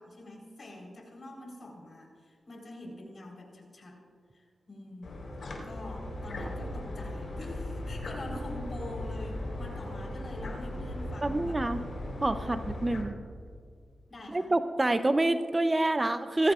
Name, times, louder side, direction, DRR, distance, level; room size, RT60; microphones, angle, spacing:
voice 1, 0.0-4.0 4.3-5.3 5.6-11.6 14.1-14.5, left 1 dB, 50° left, 0 dB, 4.0 m, -45 dB
sound 1, 5.0-13.0, left 1 dB, 65° left, 3.9 m, -37 dB
voice 2, 11.2-11.8 12.2-13.1 14.3-16.5, right 2 dB, 25° right, 9 dB, 0.6 m, -27 dB
21.5 x 14.5 x 2.4 m, 2.2 s
cardioid pair, 80°, 0 cm